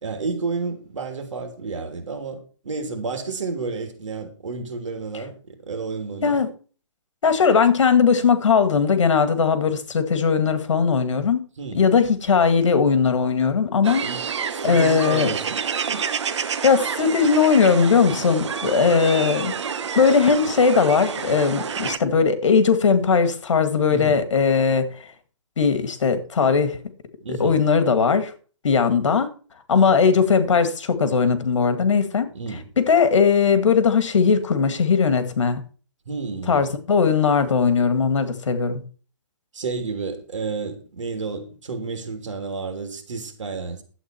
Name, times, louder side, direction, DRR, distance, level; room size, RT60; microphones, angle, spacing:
voice 1, 0.0-2.4 2.6-6.4 11.6-11.8 14.0-14.2 14.5-16.1 23.9-24.2 27.2-27.6 32.3-32.6 36.1-36.7 39.5-43.8, right 4 dB, 85° right, 3.1 m, -31 dB
voice 2, 7.2-11.4 11.7-14.1 14.6-15.3 16.6-19.5 20.0-24.9 25.6-26.8 27.3-28.3 28.6-29.3 29.7-32.3 32.8-35.6 36.5-38.8, left 5 dB, 75° left, 2.1 m, -19 dB
sound 1, 13.8-22.0, right 6 dB, 70° right, 1.0 m, -29 dB
11.5 x 8.2 x 4.5 m
hypercardioid pair, 170°, 16 cm